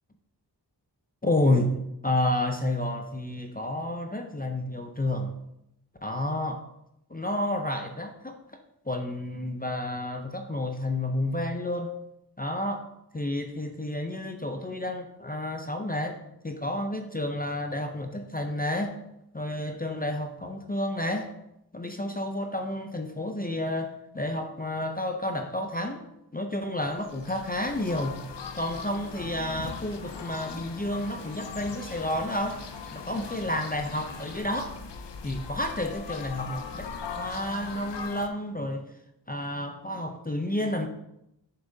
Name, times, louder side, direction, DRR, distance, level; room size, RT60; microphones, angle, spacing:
voice 1, 1.2-1.8 2.0-5.3 6.0-6.6 7.1-8.4 8.9-11.9 12.4-12.9 13.1-16.2 16.4-19.0 19.3-21.3 21.7-26.0 26.3-28.2 28.5-32.6 32.9-34.8 35.2-38.9 39.3-40.9, left 1 dB, 20° left, 5 dB, 0.5 m, -30 dB
sound 1, 26.8-38.3, left 6 dB, 75° left, 0.7 m, -41 dB
Wind, 29.1-34.4, left 4 dB, 90° left, 1.0 m, -45 dB
7.0 x 6.9 x 2.7 m, 0.83 s
wide cardioid pair, 85°, 43 cm